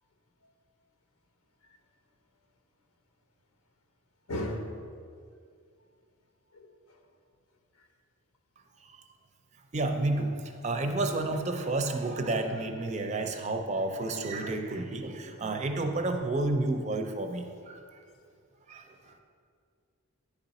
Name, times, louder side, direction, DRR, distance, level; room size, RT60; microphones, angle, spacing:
voice 1, 4.3-4.7 6.5-7.0 7.8-7.9, left 1 dB, 90° left, 4 dB, 0.9 m, -36 dB
voice 2, 9.7-18.0 18.7-19.1, right 2 dB, 30° right, 5 dB, 0.4 m, -31 dB
10.0 x 3.9 x 4.1 m, 2.2 s
head